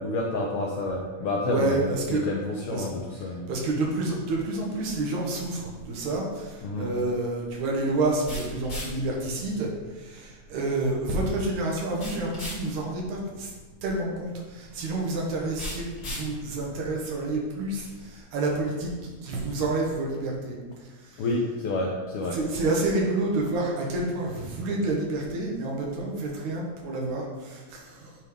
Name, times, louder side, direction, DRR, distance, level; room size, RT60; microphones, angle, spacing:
voice 1, 0.0-1.8 2.1-3.5 6.6-6.9 21.2-22.4, left 2 dB, 75° left, -1 dB, 1.3 m, -29 dB
voice 2, 1.4-2.2 2.7-2.9 3.5-13.5 13.8-20.6 20.8-21.4 22.3-28.1, right 2 dB, 80° right, -1 dB, 2.7 m, -29 dB
sound 1, 5.6-18.2, left 1 dB, 35° left, 2.4 m, -42 dB
9.1 x 3.8 x 4.8 m, 1.3 s
omnidirectional pair, 3.3 m